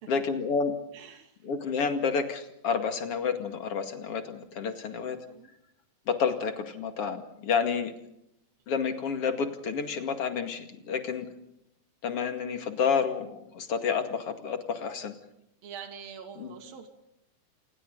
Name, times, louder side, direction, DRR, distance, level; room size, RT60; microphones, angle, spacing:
voice 1, 0.1-0.8 1.4-5.2 6.1-7.9 8.7-11.3 12.0-15.1 16.4-16.5, left 6 dB, 45° left, 6 dB, 2.6 m, -30 dB
voice 2, 0.9-1.4 5.3-5.5 15.6-16.9, right 7 dB, 65° right, 4 dB, 4.3 m, -44 dB
28.5 x 28.0 x 4.0 m, 0.80 s
omnidirectional pair, 4.4 m